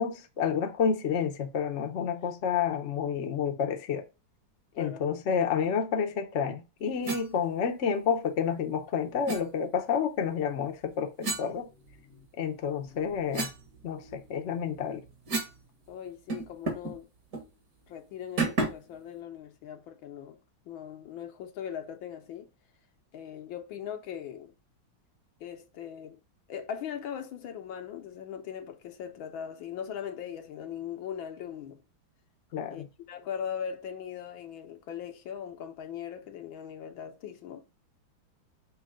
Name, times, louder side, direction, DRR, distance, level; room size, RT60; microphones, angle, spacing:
voice 1, 0.0-4.1 4.8-11.7 12.4-13.5 13.8-15.0 32.5-32.9, left 7 dB, 50° left, 0.9 m, -29 dB
voice 2, 4.7-5.0 15.9-17.1 17.9-20.4 20.6-22.5 23.1-24.5 25.4-26.2 26.5-31.8 32.7-37.6, left 8 dB, 80° left, 1.7 m, -40 dB
sound 1, 7.0-7.3 9.3-9.4 11.2-12.3 12.7-15.6 15.9-16.0 16.3-17.0 17.3-17.5 18.4-18.9, right 3 dB, 50° right, 2.0 m, -34 dB
6.3 x 3.1 x 5.1 m
omnidirectional pair, 2.2 m